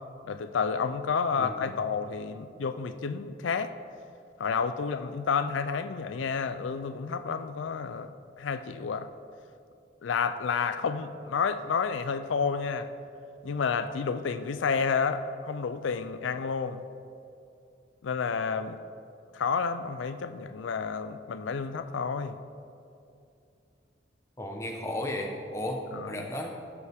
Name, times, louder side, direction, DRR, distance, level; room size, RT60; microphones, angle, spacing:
voice 1, 0.3-3.7 4.4-8.1 8.4-9.1 10.0-12.9 13.4-16.8 18.0-18.8 19.3-22.4 25.9-26.2, left 5 dB, 80° left, 10 dB, 0.4 m, -30 dB
voice 2, 1.4-1.7 24.4-25.8 26.1-26.5, left 1 dB, 15° left, 1 dB, 1.0 m, -34 dB
15.5 x 6.7 x 3.5 m, 2.6 s
head